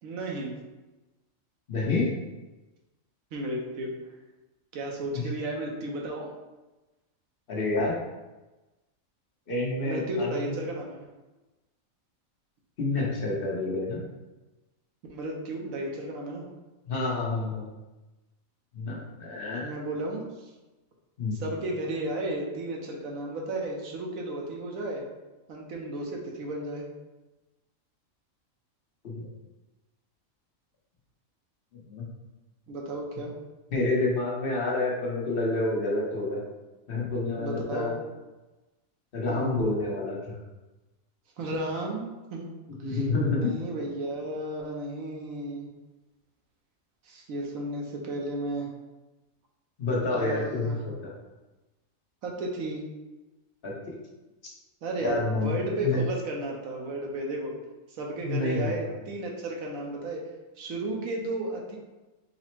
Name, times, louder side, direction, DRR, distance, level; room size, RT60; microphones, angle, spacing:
voice 1, 0.0-0.5 3.3-3.9 4.7-6.3 9.8-11.1 15.1-16.5 19.6-20.5 21.3-25.0 25.5-26.9 32.7-33.3 37.4-37.9 39.3-39.5 41.4-42.5 42.8-43.0 43.3-45.7 47.0-48.7 50.1-50.8 52.2-52.9 54.8-57.5 57.9-60.2 60.6-61.8, right 1 dB, 85° right, 0 dB, 1.1 m, -33 dB
voice 2, 1.7-2.0 7.5-7.9 9.5-10.5 12.8-14.0 16.9-17.6 18.7-19.6 21.2-21.4 29.0-29.3 31.9-32.0 33.7-36.4 36.9-37.9 39.1-40.2 42.8-43.5 49.8-51.1 53.6-53.7 55.0-55.5 55.8-56.0 58.2-58.7, left 2 dB, 45° left, -4 dB, 1.1 m, -28 dB
4.0 x 2.0 x 4.4 m, 1.1 s
omnidirectional pair, 1.4 m